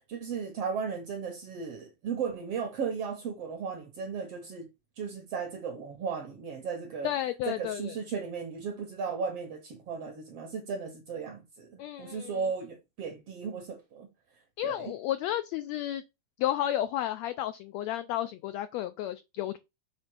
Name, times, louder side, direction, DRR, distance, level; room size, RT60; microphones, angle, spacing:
voice 1, 0.0-4.7 5.0-7.1 7.5-14.1 14.6-14.9, right 6 dB, 65° right, 1.6 m, -36 dB
voice 2, 7.0-8.0 11.8-12.4 14.6-16.0 16.4-19.6, left 12 dB, 85° left, 1.5 m, -32 dB
6.6 x 3.4 x 6.1 m
omnidirectional pair, 3.6 m